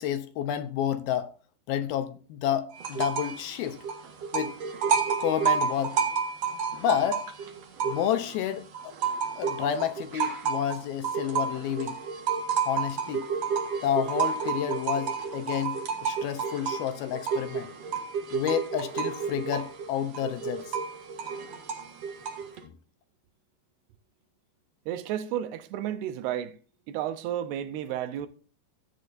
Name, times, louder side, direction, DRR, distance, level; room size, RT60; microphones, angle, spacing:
voice 1, 0.0-1.3 1.7-3.8 4.3-4.5 5.2-6.0 6.7-7.2 7.8-8.9 9.4-12.0 12.6-13.3 13.8-17.7 18.3-20.8, left 9 dB, 75° left, 2.5 m, -30 dB
sound 1, 2.8-3.4 3.7-8.4 8.7-22.6, right 6 dB, 55° right, 1.9 m, -30 dB
voice 2, 24.9-26.6 26.9-28.3, right 11 dB, 85° right, 2.8 m, -32 dB
15.0 x 9.2 x 2.6 m
omnidirectional pair, 4.7 m